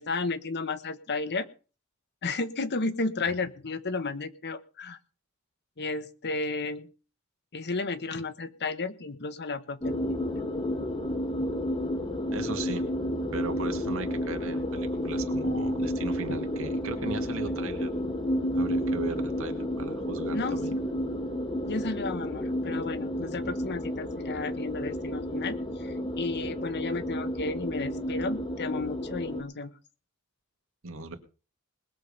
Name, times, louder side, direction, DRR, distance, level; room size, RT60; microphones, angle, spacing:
voice 1, 0.0-1.5 2.2-5.0 5.8-6.9 7.5-10.2 20.3-20.6 21.6-29.7, left 3 dB, 50° left, 12 dB, 1.1 m, -33 dB
sound 1, 9.8-29.4, equal, 25° left, 1.7 m, -31 dB
voice 2, 12.3-12.8 13.3-18.1 18.5-20.7 30.8-31.2, right 3 dB, 70° right, 6 dB, 2.1 m, -37 dB
20.5 x 7.5 x 5.3 m, 0.36 s
head